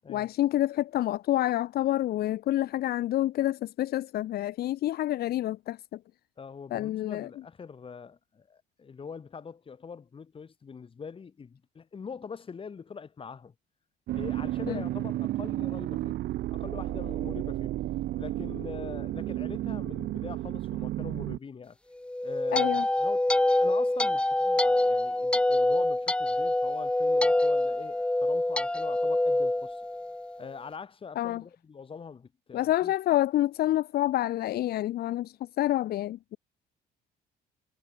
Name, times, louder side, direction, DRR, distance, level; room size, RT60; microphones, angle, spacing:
voice 1, 0.1-6.0 6.7-7.3 14.7-14.8 22.5-22.9 31.1-31.4 32.5-36.4, left 14 dB, 65° left, 1.3 m, -28 dB
voice 2, 6.4-13.5 14.1-16.1 16.5-17.8 18.2-21.8 22.2-22.7 23.0-29.8 30.4-32.9, left 6 dB, 30° left, 3.3 m, -43 dB
sound 1, 14.1-21.4, right 15 dB, 70° right, 1.2 m, -32 dB
sound 2, 22.0-30.4, left 1 dB, 5° left, 0.6 m, -26 dB
cardioid pair, 110°, 17 cm